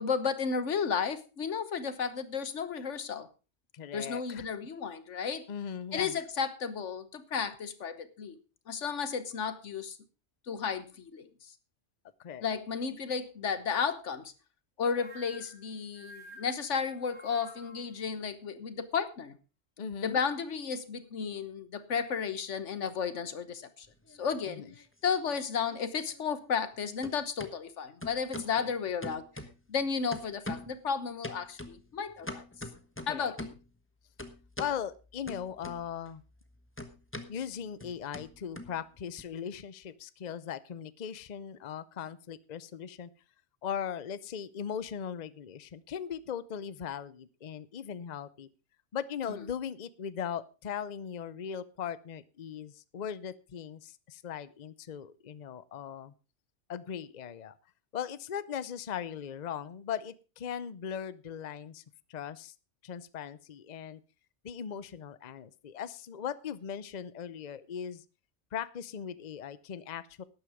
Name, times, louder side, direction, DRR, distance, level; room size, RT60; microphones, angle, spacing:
voice 1, 0.0-3.3 3.9-5.5 5.9-8.4 8.7-10.0 10.5-11.3 12.4-14.3 14.8-19.4 20.0-23.9 24.2-24.6 25.0-29.2 29.7-32.4 33.1-33.5, left 6 dB, 85° left, 13 dB, 1.5 m, -33 dB
voice 2, 3.7-4.5 5.5-6.2 12.2-12.4 19.8-20.2 24.4-24.7 28.6-28.7 33.1-33.3 34.6-36.2 37.3-43.1 43.6-48.5 48.9-56.1 56.7-57.6 57.9-61.8 62.1-62.5 62.8-64.0 64.4-68.0 68.5-70.2, left 8 dB, 45° left, 16 dB, 0.7 m, -39 dB
sound 1, 14.9-18.0, equal, 70° right, 2.4 m, -51 dB
sound 2, 23.9-24.9 25.2-26.8 27.0-27.5 28.0-28.6 29.0-29.8 30.1-30.8 31.2-33.7 34.2-34.8 35.3-36.1 36.4-39.2, left 1 dB, 10° left, 1.3 m, -43 dB
12.0 x 10.0 x 4.9 m, 0.32 s
omnidirectional pair, 1.2 m